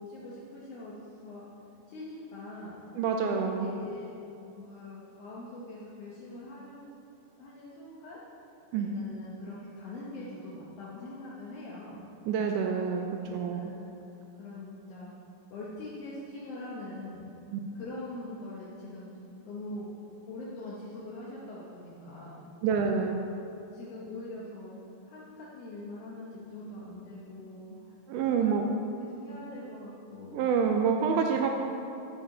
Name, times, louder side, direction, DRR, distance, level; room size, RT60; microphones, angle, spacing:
voice 1, 0.0-1.5 1.9-2.8 3.2-4.2 4.5-6.8 7.4-8.2 8.7-12.0 13.1-13.8 14.4-15.1 15.5-17.3 17.7-19.1 19.5-22.5 23.7-24.8 25.1-27.8 28.4-30.5 31.1-31.2, left 2 dB, 70° left, -6 dB, 1.5 m, -43 dB
voice 2, 3.0-3.7 8.7-8.9 12.3-13.1 13.3-13.6 17.5-17.6 22.6-23.2 28.1-28.6 30.3-31.5, right 6 dB, 85° right, 3 dB, 1.8 m, -27 dB
10.0 x 7.1 x 3.9 m, 2.7 s
omnidirectional pair, 4.0 m